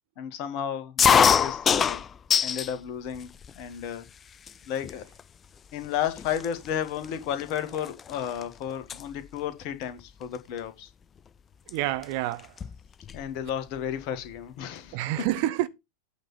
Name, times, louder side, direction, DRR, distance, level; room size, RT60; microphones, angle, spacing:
voice 1, 0.2-2.0 2.4-3.3 3.6-4.1 4.7-5.0 5.7-10.9 13.1-15.0, left 9 dB, 45° left, 1.9 m, -32 dB
sound 1, 1.0-2.7 3.1-3.8 4.5-4.6 4.8-5.2 5.8-5.9 6.2-8.4 8.7-9.0 10.3-10.6 11.7-11.8 12.0-12.1 12.4-13.3, left 7 dB, 20° left, 0.4 m, -24 dB
voice 2, 11.7-12.5 14.9-15.7, right 15 dB, 45° right, 0.8 m, -28 dB
8.8 x 4.3 x 6.8 m
figure-of-eight pair, 90°, 0 cm